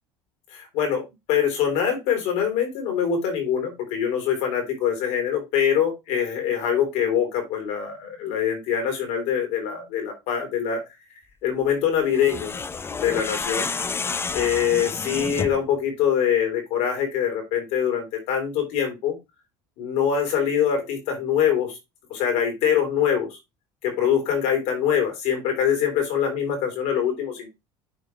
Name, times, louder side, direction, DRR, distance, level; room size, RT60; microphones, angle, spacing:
voice 1, 0.5-10.8 11.4-12.5 13.0-13.7 14.3-19.2 19.8-21.8 22.1-23.4 23.8-27.5, left 8 dB, 75° left, 4 dB, 3.9 m, -24 dB
sound 1, 12.1-15.7, left 4 dB, 20° left, 0.5 m, -30 dB
10.0 x 4.4 x 3.2 m, 0.23 s
supercardioid pair, 100°, 12 cm